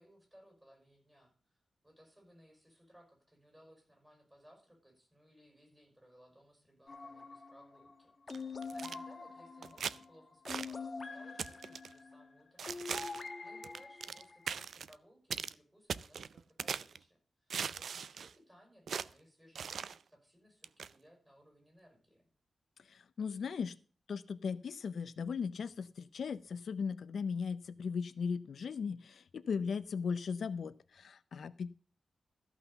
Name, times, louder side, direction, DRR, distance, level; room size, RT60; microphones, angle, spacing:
voice 1, 0.0-22.3, equal, 10° right, 2 dB, 5.6 m, -63 dB
sound 1, 6.9-14.6, left 4 dB, 35° left, 1.1 m, -46 dB
sound 2, 8.3-9.0 9.6-10.0 10.5-10.7 11.4-11.9 12.6-13.3 13.6-14.2 14.5-14.9 15.3-15.5 15.9-17.0 17.5-18.3 18.9-19.1 19.6-20.0 20.6-20.9, right 6 dB, 80° right, 0.4 m, -40 dB
voice 2, 22.9-23.7 24.1-31.7, left 6 dB, 70° left, 13 dB, 0.5 m, -37 dB
14.0 x 5.9 x 6.8 m, 0.40 s
wide cardioid pair, 125°, 0 cm